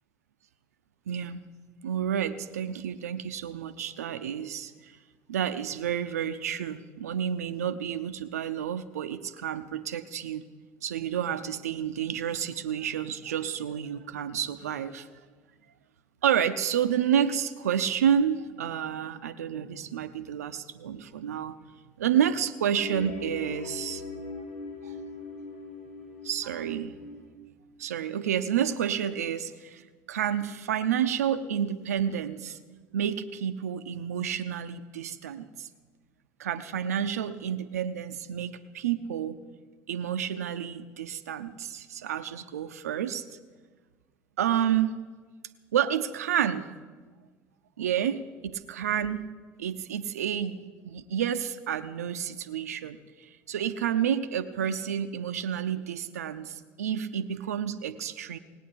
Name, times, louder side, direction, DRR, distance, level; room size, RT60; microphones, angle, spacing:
voice 1, 1.1-1.4 1.8-5.0 5.3-10.5 10.8-15.1 16.2-21.6 22.0-24.0 24.8-24.9 26.2-26.9 27.8-29.8 30.1-32.6 32.9-35.7 36.4-39.4 39.9-43.2 44.4-44.9 45.7-46.7 47.8-49.3 49.6-58.4, right 9 dB, 90° right, 12 dB, 0.6 m, -30 dB
sound 1, 22.8-27.3, left 3 dB, 80° left, 3.0 m, -40 dB
18.0 x 9.2 x 8.6 m, 1.4 s
hypercardioid pair, 65°, 8 cm